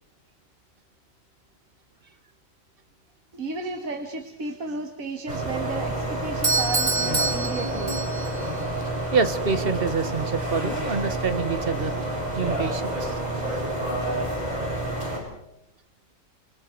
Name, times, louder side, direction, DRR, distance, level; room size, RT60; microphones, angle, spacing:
voice 1, 3.3-8.0, right 3 dB, 85° right, 5 dB, 2.1 m, -33 dB
sound 1, 5.3-15.2, right 1 dB, 30° right, 6.9 m, -29 dB
Doorbell, 6.4-8.4, right 3 dB, 65° right, 2.9 m, -26 dB
voice 2, 9.1-12.1 12.4-13.2, right 5 dB, 45° right, 12 dB, 1.4 m, -26 dB
28.5 x 28.5 x 4.6 m, 0.81 s
omnidirectional pair, 1.4 m